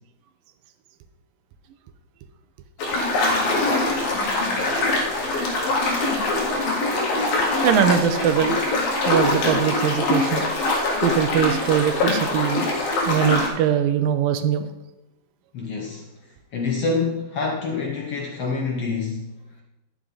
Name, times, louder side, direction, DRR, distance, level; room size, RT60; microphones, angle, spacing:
sound 1, 2.8-13.5, left 2 dB, 80° left, 3.8 m, -23 dB
voice 1, 7.6-8.6 9.1-10.5 11.0-12.7 13.1-14.7, right 9 dB, 80° right, 9 dB, 2.4 m, -21 dB
voice 2, 15.5-16.1 16.5-19.4, left 4 dB, 65° left, 0 dB, 1.6 m, -26 dB
11.0 x 9.9 x 3.9 m, 0.97 s
omnidirectional pair, 4.3 m